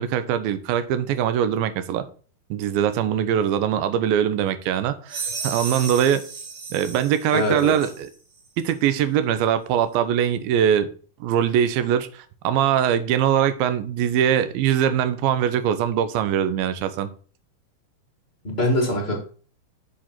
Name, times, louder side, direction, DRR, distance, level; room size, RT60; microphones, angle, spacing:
voice 1, 0.0-2.0 2.5-6.2 6.7-8.1 8.6-10.9 11.2-17.1, right 9 dB, 85° right, 2.6 m, -22 dB
sound 1, 5.1-8.1, right 4 dB, 55° right, 2.5 m, -34 dB
voice 2, 7.3-7.7 18.4-19.2, left 1 dB, 30° left, 1.1 m, -22 dB
7.3 x 4.8 x 5.8 m
omnidirectional pair, 4.0 m